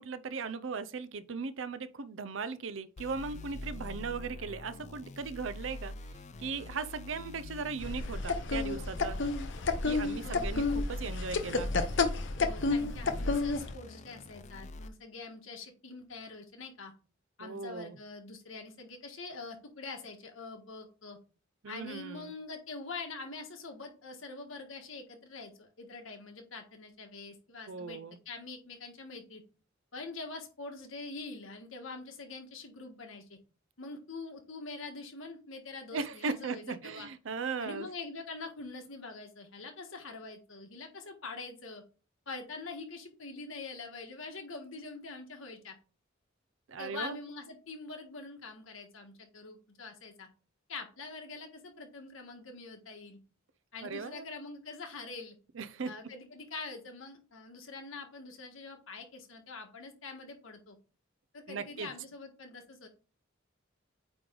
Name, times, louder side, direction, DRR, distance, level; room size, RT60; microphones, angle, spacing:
voice 1, 0.0-5.9 6.4-9.2 9.8-11.7 17.4-18.0 21.6-22.3 27.7-28.2 35.9-37.9 46.7-47.2 53.8-54.3 55.6-55.9 61.5-61.9, right 4 dB, 70° right, 0.5 m, -38 dB
sound 1, 3.0-14.9, left 2 dB, 35° left, 0.4 m, -44 dB
sound 2, 7.8-13.7, left 3 dB, 65° left, 0.7 m, -31 dB
voice 2, 12.4-16.9 17.4-21.2 21.7-28.0 28.2-29.4 29.9-33.4 33.8-37.1 37.6-41.8 42.3-45.7 46.8-50.3 50.7-53.2 53.7-55.4 55.8-60.8 61.3-62.9, left 3 dB, 85° left, 1.5 m, -44 dB
8.7 x 3.1 x 3.8 m
head